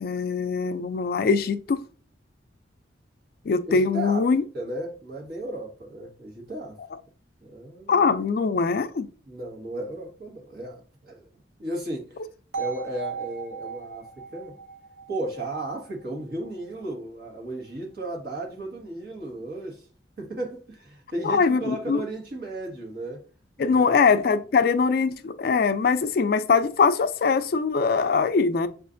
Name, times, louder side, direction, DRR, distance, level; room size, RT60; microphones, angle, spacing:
voice 1, 0.0-1.8 3.5-4.4 7.9-9.1 21.2-22.0 23.6-28.7, left 5 dB, 55° left, 0.3 m, -22 dB
voice 2, 3.7-4.3 4.5-6.8 7.4-8.0 9.2-11.3 11.6-12.2 12.6-14.6 15.1-19.8 20.2-23.2 23.6-24.1, right 1 dB, 60° right, 1.4 m, -35 dB
sound 1, 12.5-16.5, right 6 dB, 85° right, 0.8 m, -37 dB
6.2 x 2.4 x 2.5 m
head